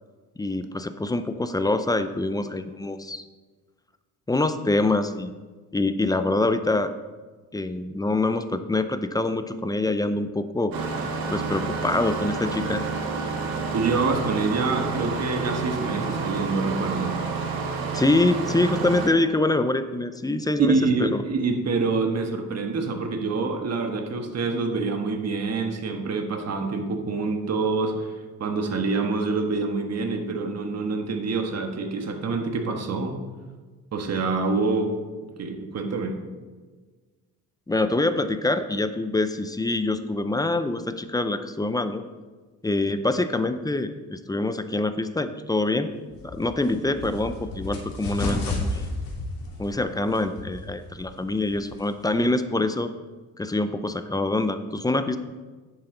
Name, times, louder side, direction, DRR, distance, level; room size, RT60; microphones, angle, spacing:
voice 1, 0.4-3.2 4.3-5.3 5.7-6.9 7.5-10.9 11.3-12.8 17.9-21.2 37.7-42.0 42.6-45.9 46.2-48.9 49.6-52.9 53.4-55.2, left 2 dB, 10° left, 10 dB, 0.5 m, -25 dB
Engine starting, 10.7-19.1, right 4 dB, 70° right, 1.7 m, -29 dB
voice 2, 13.7-17.2 20.7-28.1 28.4-33.2 33.9-34.9 35.4-36.2, right 3 dB, 45° right, 4 dB, 1.5 m, -26 dB
sound 1, 46.1-52.2, left 2 dB, 70° left, 3.0 m, -33 dB
10.5 x 8.1 x 3.9 m, 1.3 s
cardioid pair, 105°, 36 cm